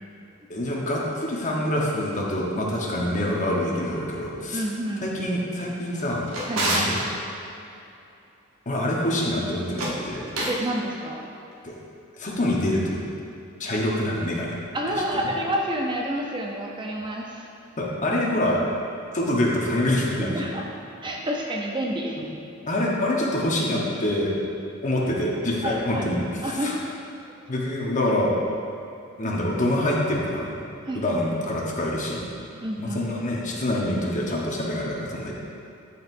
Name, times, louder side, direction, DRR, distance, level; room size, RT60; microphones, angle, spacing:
voice 1, 0.5-4.6 5.0-6.3 6.5-7.0 8.7-10.2 11.6-11.8 12.2-13.0 13.6-14.6 17.8-18.6 19.1-20.5 22.6-24.3 24.8-26.7 27.5-28.3 29.2-30.5 30.9-32.3 32.8-35.3, left 1 dB, 35° left, -3 dB, 1.0 m, -25 dB
voice 2, 4.5-5.1 6.5-6.9 10.5-11.3 14.7-17.5 20.2-20.6 21.0-22.3 25.6-26.1 26.4-26.9 30.9-31.0 32.6-33.0, right 1 dB, 25° right, 0 dB, 0.5 m, -29 dB
Drawer open or close, 5.9-7.0 9.6-10.7, right 1 dB, 90° right, 1.1 m, -28 dB
11.0 x 4.6 x 2.6 m, 2.7 s
head